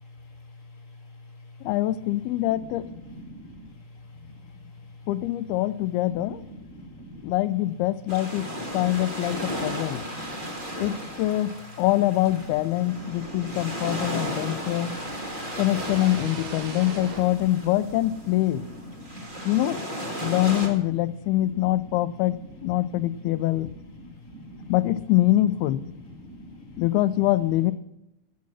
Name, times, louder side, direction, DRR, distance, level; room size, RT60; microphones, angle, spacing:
voice 1, 1.6-2.9 5.1-6.4 7.2-10.1 10.8-15.0 15.6-18.7 19.5-19.8 20.2-23.7 24.7-26.0 26.8-27.7, left 15 dB, 80° left, 15 dB, 2.4 m, -24 dB
voice 2, 3.0-4.1 4.4-4.6 4.9-5.0 6.1-7.4 8.6-9.4 9.7-11.3 12.9-15.6 16.6-16.8 17.3-17.6 18.4-19.6 21.4-21.5 22.4-22.5 22.7-22.9 23.2-23.3 23.7-24.7 26.0-26.8, equal, 80° right, -1 dB, 0.7 m, -44 dB
sound 1, 8.1-20.7, equal, 35° right, 0.7 m, -35 dB
sound 2, 15.7-18.5, right 3 dB, 55° right, 4.0 m, -39 dB
16.0 x 7.3 x 5.9 m, 0.88 s
omnidirectional pair, 4.6 m